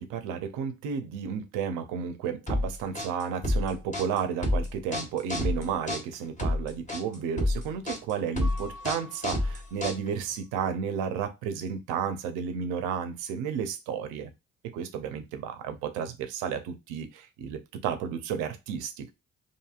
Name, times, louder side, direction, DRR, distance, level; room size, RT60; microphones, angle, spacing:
voice 1, 0.0-14.3 14.7-19.1, right 7 dB, 80° right, 0.6 m, -32 dB
sound 1, 2.5-10.3, left 1 dB, 25° left, 1.2 m, -29 dB
Mallet percussion, 8.4-10.2, left 1 dB, ahead, 0.7 m, -47 dB
2.9 x 2.7 x 2.4 m
hypercardioid pair, 55°, 31 cm